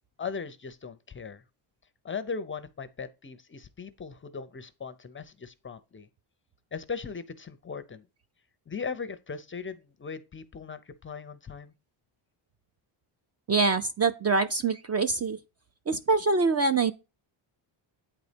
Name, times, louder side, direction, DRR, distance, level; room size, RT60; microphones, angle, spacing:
voice 1, 0.2-1.4 2.0-6.1 6.7-8.1 8.7-11.7, left 5 dB, 25° left, 0.4 m, -38 dB
voice 2, 13.5-15.4 15.9-16.9, right 4 dB, 35° right, 0.4 m, -24 dB
8.8 x 4.1 x 4.9 m
cardioid pair, 150°, 50 cm